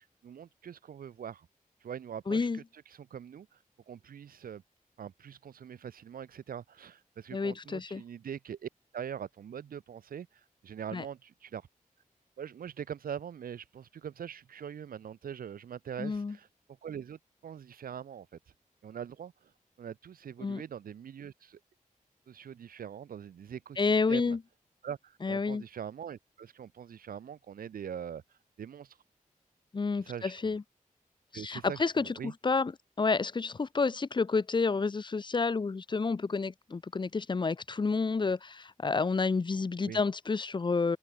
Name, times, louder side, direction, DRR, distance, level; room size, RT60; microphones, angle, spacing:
voice 1, 0.2-1.5 1.8-3.6 3.9-4.6 5.0-11.7 12.4-16.5 16.8-18.4 18.8-19.5 19.8-21.6 22.3-24.4 24.8-28.2 28.6-29.0 30.0-30.6 31.3-32.3 39.9-40.0, right 8 dB, 85° right, 0.6 m, -43 dB
voice 2, 2.3-2.6 7.3-8.0 10.9-11.0 16.0-16.4 20.4-20.6 23.8-24.4 25.2-25.6 29.7-30.6 31.3-32.7 33.0-41.0, left 4 dB, 35° left, 0.5 m, -30 dB
cardioid pair, 55°, 15 cm